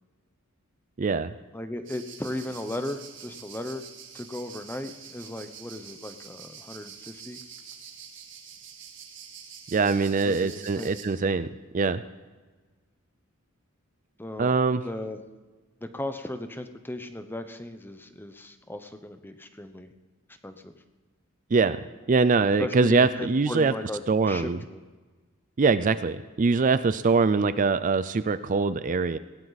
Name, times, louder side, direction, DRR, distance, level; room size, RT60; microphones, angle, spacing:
voice 1, 1.0-1.3 9.7-11.5 11.7-12.0 14.4-14.8 21.5-21.8 22.1-23.7 24.1-24.6 25.6-29.2, right 4 dB, 40° right, 13 dB, 0.4 m, -23 dB
voice 2, 1.5-3.8 4.1-7.4 10.2-10.9 14.2-14.6 14.8-15.2 15.8-19.9 20.4-20.7 22.6-24.8, left 1 dB, 10° left, 9 dB, 0.9 m, -36 dB
sound 1, 1.8-11.0, right 7 dB, 60° right, 2.1 m, -46 dB
19.0 x 17.0 x 4.1 m, 1.3 s
head